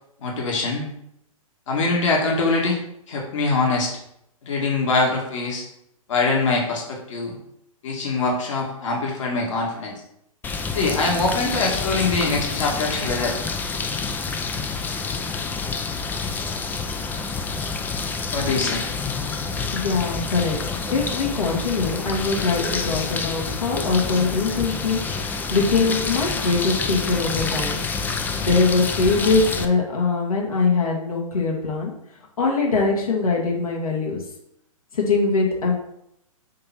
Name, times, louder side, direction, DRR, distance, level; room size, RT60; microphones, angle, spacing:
voice 1, 0.2-0.9 1.7-2.8 3.1-3.9 4.4-5.6 6.1-7.4 7.8-10.0 10.7-13.4 18.3-18.8 23.7-23.9, left 3 dB, 60° left, -1 dB, 1.9 m, -23 dB
sound 1, 10.4-29.6, left 4 dB, 10° left, 0.5 m, -28 dB
voice 2, 19.7-20.6 20.9-25.0 25.5-27.8 28.4-31.9 32.4-34.2 34.9-35.7, left 4 dB, 75° left, -2 dB, 2.0 m, -22 dB
7.3 x 3.0 x 5.9 m, 0.77 s
hypercardioid pair, 120°, 18 cm